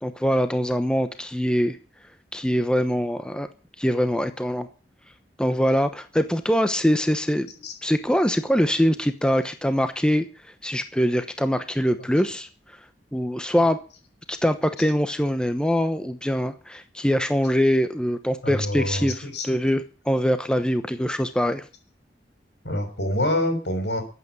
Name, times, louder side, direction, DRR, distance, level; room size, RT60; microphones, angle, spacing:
voice 1, 0.0-1.8 2.3-3.5 3.8-4.7 5.4-7.5 7.8-12.5 13.1-13.8 14.3-21.6, equal, 5° left, 9 dB, 0.9 m, -23 dB
voice 2, 18.4-19.5 22.6-24.0, left 1 dB, 75° left, 6 dB, 6.1 m, -26 dB
14.5 x 8.6 x 9.4 m, 0.37 s
head